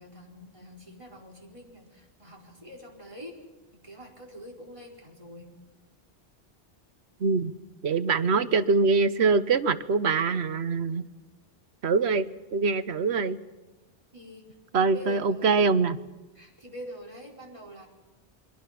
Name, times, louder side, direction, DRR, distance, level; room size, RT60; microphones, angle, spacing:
voice 1, 0.0-3.4 3.7-5.5 14.1-15.6 16.3-17.9, equal, 30° right, -1 dB, 4.7 m, -45 dB
voice 2, 7.2-7.5 7.8-11.0 11.8-13.4 14.7-16.0, right 4 dB, 80° right, 13 dB, 1.2 m, -24 dB
28.5 x 23.5 x 5.9 m, 1.1 s
omnidirectional pair, 1.1 m